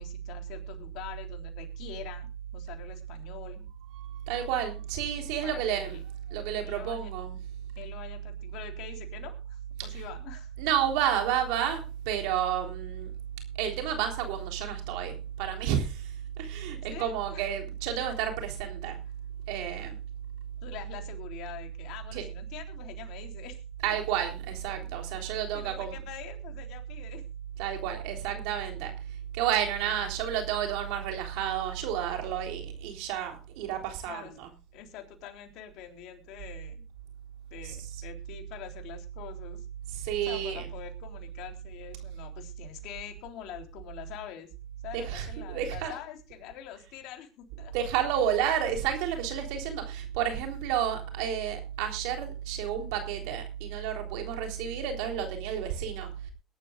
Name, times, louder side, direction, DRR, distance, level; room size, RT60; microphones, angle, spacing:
voice 1, 0.0-3.6 5.4-6.0 6.7-7.1 7.8-10.5 16.9-17.5 20.6-24.0 25.5-27.3 29.8-29.9 34.1-34.3 34.7-36.8 37.5-39.7 40.3-44.5 44.8-47.7, left 10 dB, 75° left, 4 dB, 3.5 m, -45 dB
voice 2, 4.0-6.0 6.3-7.4 9.8-10.0 10.6-13.1 13.6-19.0 19.5-20.0 22.1-22.2 23.8-25.9 27.6-34.5 37.6-37.8 39.9-40.7 44.9-45.9 47.7-56.3, right 9 dB, 85° right, 4 dB, 3.5 m, -31 dB
22.0 x 12.0 x 2.4 m, 0.31 s
supercardioid pair, 95°, 0 cm